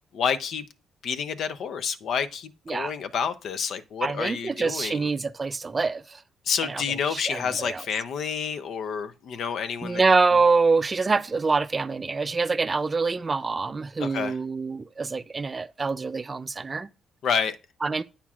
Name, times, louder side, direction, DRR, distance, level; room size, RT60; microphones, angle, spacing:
voice 1, 0.1-0.6 1.0-5.1 6.5-10.0 14.0-14.4 17.2-17.6, left 6 dB, 70° left, 0.6 m, -29 dB
voice 2, 4.0-6.0 6.6-6.8 7.1-7.8 9.8-16.9 17.8-18.0, right 4 dB, 30° right, 0.4 m, -25 dB
8.6 x 5.7 x 2.4 m
cardioid pair, 90°, 0 cm